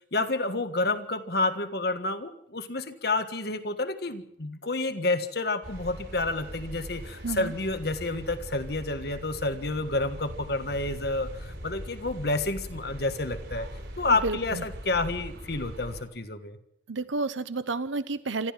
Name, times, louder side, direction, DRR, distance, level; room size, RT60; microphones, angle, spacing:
voice 1, 0.1-13.7 14.0-16.6, left 2 dB, 55° left, 9 dB, 1.5 m, -29 dB
sound 1, 5.6-16.0, equal, 65° right, 5.8 m, -41 dB
voice 2, 14.2-14.6 16.9-18.5, right 3 dB, 90° right, 14 dB, 1.0 m, -30 dB
25.5 x 14.0 x 7.4 m, 0.77 s
head